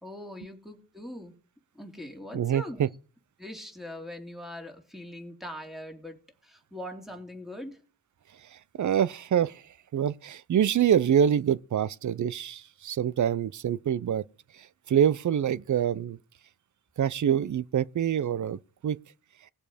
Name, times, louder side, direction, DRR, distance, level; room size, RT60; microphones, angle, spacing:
voice 1, 0.0-1.3 1.7-2.8 3.4-7.8, left 1 dB, ahead, 2.7 m, -41 dB
voice 2, 2.3-2.9 8.8-9.6 9.9-14.2 14.9-16.2 17.0-19.0, right 9 dB, 50° right, 0.6 m, -25 dB
19.0 x 7.2 x 5.1 m
cardioid pair, 75°, 38 cm